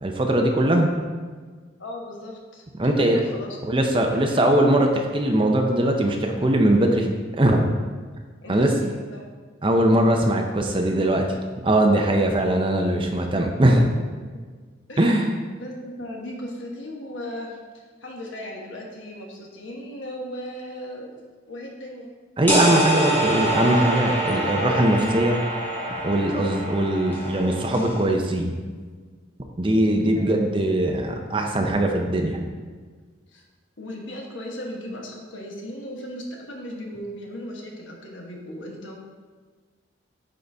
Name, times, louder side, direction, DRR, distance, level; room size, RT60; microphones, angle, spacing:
voice 1, 0.0-0.9 2.8-3.2 3.6-7.1 7.4-7.7 8.5-8.7 9.6-11.3 11.6-13.9 15.0-15.3 22.4-25.4 26.0-28.5 29.6-32.5, right 1 dB, 25° right, 2 dB, 0.7 m, -21 dB
voice 2, 1.8-4.5 8.4-9.3 14.9-15.1 15.5-21.2 21.5-22.1 30.1-30.3 33.3-33.4 33.8-39.0, left 1 dB, 85° left, 0 dB, 1.2 m, -37 dB
sound 1, 22.5-28.0, right 1 dB, 10° left, 1.1 m, -25 dB
9.1 x 4.1 x 3.5 m, 1.5 s
head